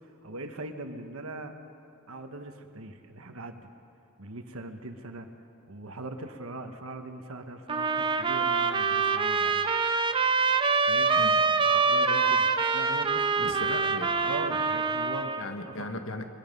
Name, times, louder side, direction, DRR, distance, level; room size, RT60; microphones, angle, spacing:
voice 1, 0.0-1.5 2.1-3.6 4.2-5.3 5.7-9.7 10.8-11.2 11.9-13.6 14.2-15.8, right 2 dB, 90° right, 6 dB, 1.3 m, -40 dB
sound 1, 7.7-15.5, right 4 dB, 25° right, 0.6 m, -25 dB
voice 2, 13.4-14.2 15.4-16.3, left 2 dB, 75° left, 6 dB, 1.5 m, -37 dB
22.5 x 21.5 x 5.4 m, 2.6 s
head